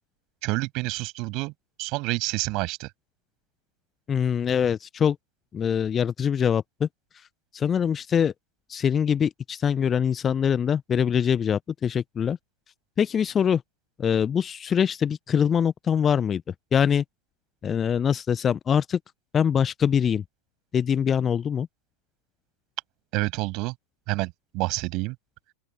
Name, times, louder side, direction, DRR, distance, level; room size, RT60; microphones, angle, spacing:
voice 1, 0.4-1.5 1.8-2.9 23.1-23.7 24.1-25.1, right 24 dB, 40° right, 6.7 m, -28 dB
voice 2, 4.1-5.2 5.5-6.9 7.5-8.3 8.7-12.4 13.0-13.6 14.0-17.0 17.6-19.0 19.3-20.2 20.7-21.7, left 8 dB, 20° left, 0.9 m, -23 dB
open air
figure-of-eight pair, 90°, 0 cm